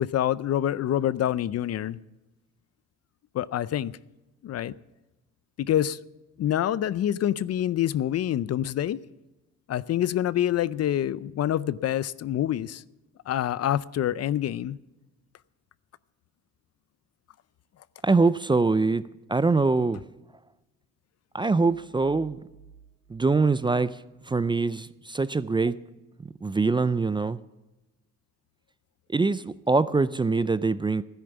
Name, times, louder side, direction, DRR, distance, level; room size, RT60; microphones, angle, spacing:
voice 1, 0.0-2.0 3.3-3.9 4.4-4.7 5.6-6.0 6.4-9.0 9.7-12.8 13.3-14.8, left 11 dB, 55° left, 18 dB, 0.5 m, -26 dB
voice 2, 18.0-19.0 19.3-20.0 21.3-22.4 23.1-25.8 26.2-27.4 29.1-31.0, right 3 dB, 15° right, 16 dB, 0.4 m, -24 dB
sound 1, 21.6-24.4, right 7 dB, 70° right, 2.7 m, -54 dB
12.5 x 10.5 x 7.0 m, 1.0 s
cardioid pair, 90°, 30 cm